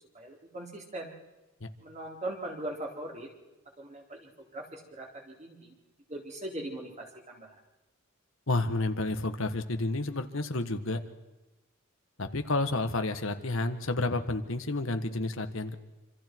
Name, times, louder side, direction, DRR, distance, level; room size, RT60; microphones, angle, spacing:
voice 1, 0.1-1.2 1.8-3.3 3.8-5.7 6.1-7.6, right 1 dB, 35° right, -1 dB, 4.0 m, -40 dB
voice 2, 8.5-11.0 12.2-15.8, left 2 dB, 70° left, 7 dB, 1.6 m, -30 dB
27.0 x 26.5 x 4.7 m, 1.1 s
head